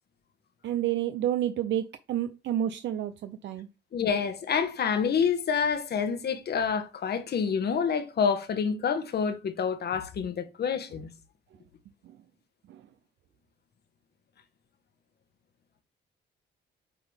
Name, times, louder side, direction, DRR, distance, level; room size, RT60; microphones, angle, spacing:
voice 1, 0.6-3.7 12.7-12.8, right 11 dB, 70° right, 0.5 m, -29 dB
voice 2, 3.9-11.1, left 6 dB, 55° left, 1.3 m, -28 dB
8.2 x 3.9 x 3.4 m
cardioid pair, 90°, 20 cm